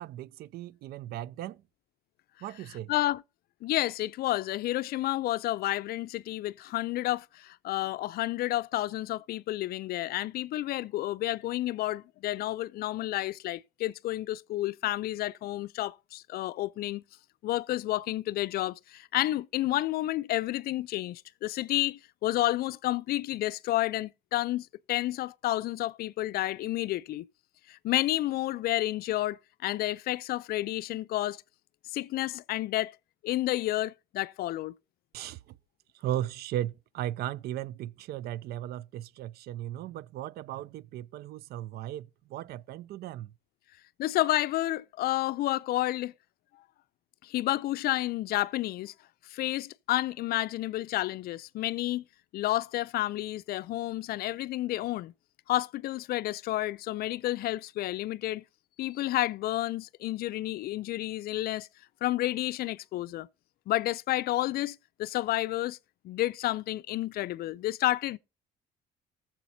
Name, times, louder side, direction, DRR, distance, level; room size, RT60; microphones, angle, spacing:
voice 1, 0.0-1.6 2.4-2.9 35.1-35.6 35.9-43.3, right 12 dB, 70° right, 0.4 m, -36 dB
voice 2, 2.9-3.2 3.6-17.0 17.4-27.3 27.7-31.4 31.9-32.9 33.2-34.7 44.0-46.1 47.2-48.9 49.3-52.0 52.3-55.1 55.5-58.4 58.8-61.7 62.0-63.3 63.7-65.8 66.0-68.2, left 15 dB, 65° left, 0.4 m, -30 dB
18.5 x 7.2 x 2.7 m
cardioid pair, 110°, 17 cm